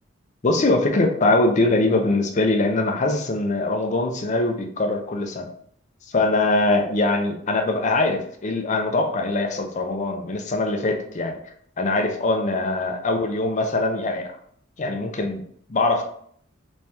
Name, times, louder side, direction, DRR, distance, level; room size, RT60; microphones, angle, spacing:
voice 1, 0.4-5.5 6.1-11.4 11.8-14.4 14.8-15.4 15.7-16.0, left 2 dB, 35° left, 4 dB, 0.5 m, -22 dB
3.1 x 2.8 x 3.4 m, 0.63 s
head